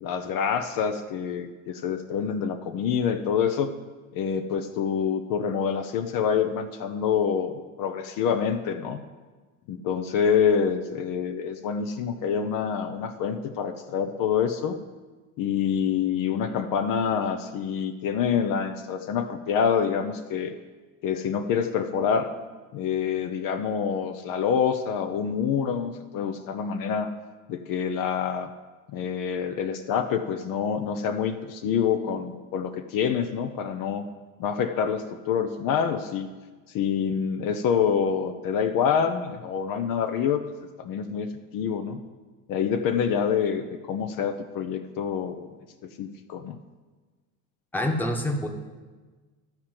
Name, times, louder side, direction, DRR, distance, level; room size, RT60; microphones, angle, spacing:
voice 1, 0.0-3.7 4.1-9.0 9.7-14.8 15.4-20.5 21.0-22.3 22.7-27.1 27.5-28.5 28.9-34.0 34.4-36.3 36.7-40.4 40.8-42.0 42.5-45.5 45.8-46.6, left 7 dB, 60° left, 7 dB, 0.7 m, -26 dB
voice 2, 47.7-48.5, left 1 dB, 5° left, 2 dB, 1.1 m, -26 dB
12.0 x 4.4 x 7.8 m, 1.3 s
supercardioid pair, 110°, 38 cm